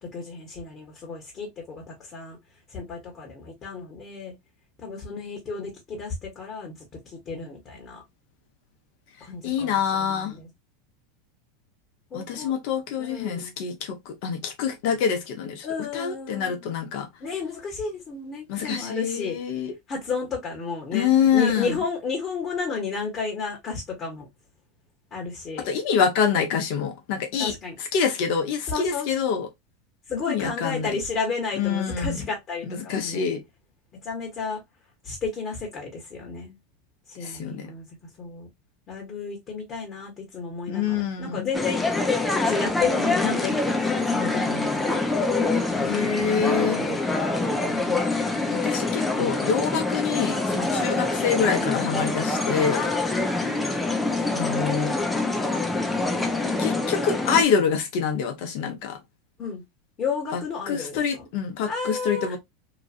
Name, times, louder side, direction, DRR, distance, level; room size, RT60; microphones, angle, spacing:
voice 1, 0.0-2.4 2.7-4.3 4.8-8.0 9.2-10.5 12.1-12.5 13.0-13.5 15.6-16.6 17.2-19.4 19.9-24.3 25.1-25.7 27.4-27.8 28.7-29.1 30.1-33.3 34.0-34.6 35.0-36.6 37.1-37.8 38.2-38.5 38.9-43.5 44.0-45.0 45.7-46.4 46.6-48.0 50.7-51.2 52.7-53.7 59.4-59.6 60.0-61.3 61.7-62.4, left 4 dB, 35° left, 1.3 m, -32 dB
voice 2, 9.4-10.3 12.1-15.7 15.9-17.1 18.5-19.7 20.9-21.8 25.7-27.5 27.8-29.5 30.3-31.0 31.6-32.2 32.7-33.4 37.2-37.7 40.7-41.5 45.8-46.8 48.5-52.8 54.3-55.0 56.6-59.0 60.3-60.4 60.7-62.4, left 7 dB, 60° left, 1.1 m, -26 dB
sound 1, 41.5-57.4, left 2 dB, 10° left, 0.6 m, -25 dB
3.0 x 2.5 x 2.5 m
hypercardioid pair, 105°, 0 cm